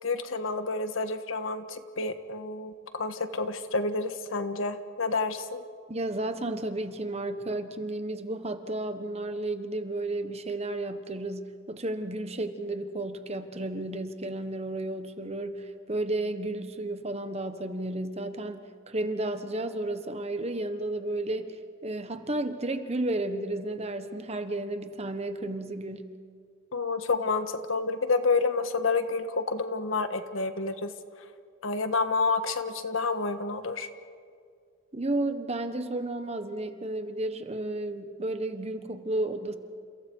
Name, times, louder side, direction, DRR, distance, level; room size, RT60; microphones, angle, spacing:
voice 1, 0.0-5.6 26.7-30.9 31.6-33.9, left 3 dB, 85° left, 9 dB, 1.5 m, -29 dB
voice 2, 5.9-21.6 21.8-26.1 34.9-39.5, right 2 dB, 30° right, 8 dB, 1.3 m, -32 dB
30.0 x 29.0 x 4.8 m, 2.1 s
head